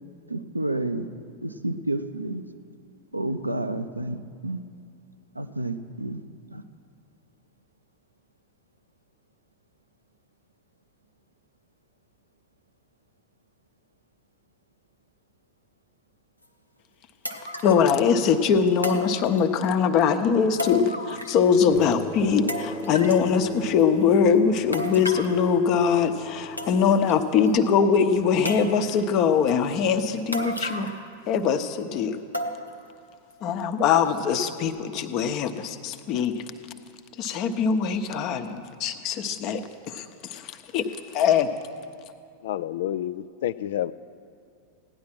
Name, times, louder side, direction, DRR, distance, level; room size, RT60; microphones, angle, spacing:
voice 1, 0.3-1.1 1.4-2.4 3.1-4.2 4.4-4.6 5.4-6.2 6.5-6.6, right 2 dB, 85° right, 9 dB, 0.6 m, -30 dB
sound 1, 16.4-16.5 17.2-17.9 18.8-19.7 20.6-21.5 21.8-21.9 22.5-23.3 24.7-25.4 26.2-26.3 26.6-27.1 27.5-27.6 28.4-29.0 30.3-31.1 31.4-31.5 32.3-32.9 33.3-33.4 34.0-34.1, left 1 dB, 90° left, 1.0 m, -33 dB
voice 2, 17.6-30.9 31.3-32.2 33.4-36.3 37.2-40.8 41.1-41.5, left 6 dB, 40° left, 9 dB, 0.9 m, -22 dB
sound 2, 21.7-30.5, equal, 5° right, 0.8 m, -38 dB
voice 3, 42.4-43.9, left 12 dB, 55° left, 15 dB, 0.3 m, -29 dB
16.5 x 10.5 x 6.0 m, 2.4 s
figure-of-eight pair, 90°, 0 cm